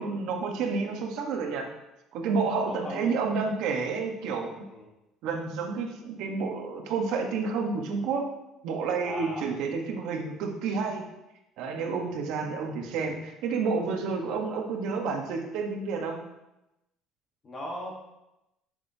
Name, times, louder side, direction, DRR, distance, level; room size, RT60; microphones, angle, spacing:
voice 1, 0.0-1.7 2.1-4.6 5.2-8.3 8.6-11.0 11.6-16.2, right 4 dB, 65° right, 3 dB, 1.1 m, -30 dB
voice 2, 2.6-3.2 4.7-4.9 9.0-9.5 12.0-12.2 17.4-17.9, equal, 25° left, -2 dB, 1.2 m, -38 dB
6.8 x 6.5 x 2.7 m, 0.92 s
cardioid pair, 155°, 0 cm